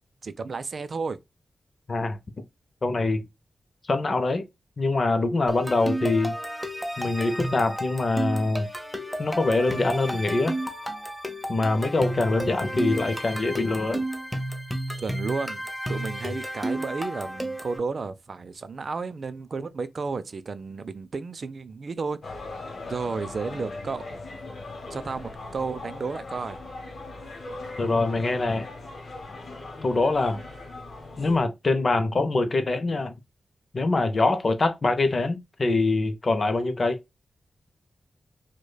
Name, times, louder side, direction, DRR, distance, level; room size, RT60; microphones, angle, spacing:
voice 1, 0.2-1.2 15.0-22.5 22.9-24.2 24.9-26.6, right 4 dB, 55° right, 0.3 m, -33 dB
voice 2, 2.8-3.2 3.9-4.4 4.8-6.3 7.0-8.7 9.2-10.5 11.5-14.0 27.8-28.7 29.8-30.4 31.2-33.1 33.7-37.0, left 3 dB, 45° left, 0.5 m, -24 dB
sound 1, 5.5-17.8, right 1 dB, 5° left, 0.7 m, -32 dB
sound 2, 22.2-31.4, left 2 dB, 60° left, 0.9 m, -39 dB
4.7 x 2.1 x 2.2 m
wide cardioid pair, 90°, 0 cm